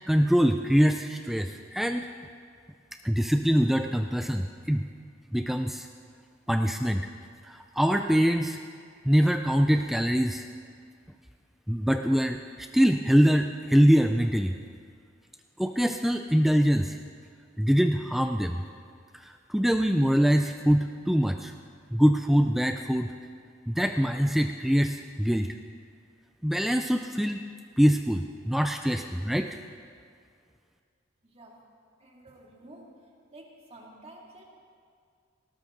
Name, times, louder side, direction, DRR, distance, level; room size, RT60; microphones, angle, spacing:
voice 1, 0.1-2.1 3.0-4.9 5.3-5.9 6.5-7.1 7.5-8.6 9.0-10.5 11.7-14.6 15.6-17.0 17.6-18.6 19.1-21.5 21.9-23.1 23.7-25.5 26.4-27.4 27.8-29.5, equal, ahead, 5 dB, 0.4 m, -24 dB
voice 2, 31.2-31.6 32.0-32.9 33.3-34.4, right 1 dB, 30° right, -2 dB, 2.5 m, -50 dB
19.0 x 17.5 x 3.9 m, 2.2 s
head